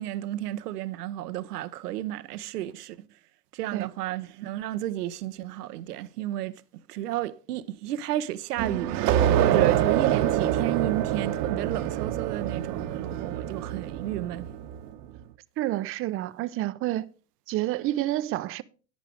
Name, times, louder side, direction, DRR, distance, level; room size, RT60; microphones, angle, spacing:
voice 1, 0.0-3.0 3.5-6.6 6.9-14.5, right 13 dB, 80° right, 0.8 m, -32 dB
sound 1, 8.6-14.9, right 11 dB, 50° right, 1.0 m, -26 dB
voice 2, 15.6-17.1 17.5-18.6, right 15 dB, 30° right, 0.5 m, -29 dB
11.5 x 8.2 x 3.5 m
hypercardioid pair, 105°, 46 cm